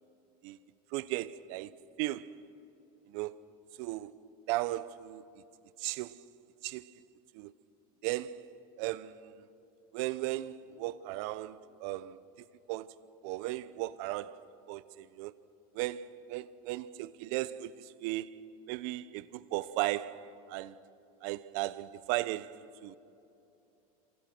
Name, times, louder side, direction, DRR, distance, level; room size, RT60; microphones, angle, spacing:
voice 1, 0.9-2.4 3.1-3.5 3.8-5.2 5.8-6.2 6.6-6.9 7.3-7.5 8.0-8.5 8.8-9.3 9.9-12.9 13.2-14.4 14.7-15.3 15.7-18.3 18.7-20.8 21.2-23.0, right 16 dB, 65° right, 1.0 m, -36 dB
28.5 x 27.0 x 6.2 m
supercardioid pair, 115°, 19 cm